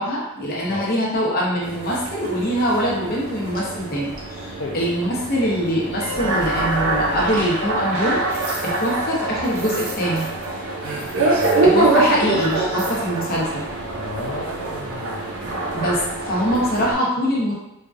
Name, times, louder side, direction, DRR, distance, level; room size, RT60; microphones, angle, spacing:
voice 1, 0.0-10.3 11.6-13.7 15.7-17.5, equal, 45° left, -4 dB, 0.9 m, -23 dB
sound 1, 1.6-16.9, right 2 dB, 75° right, 0.7 m, -24 dB
voice 2, 11.3-11.8 14.0-15.3, left 2 dB, 70° left, -4 dB, 0.5 m, -32 dB
4.4 x 2.4 x 2.6 m, 0.92 s
head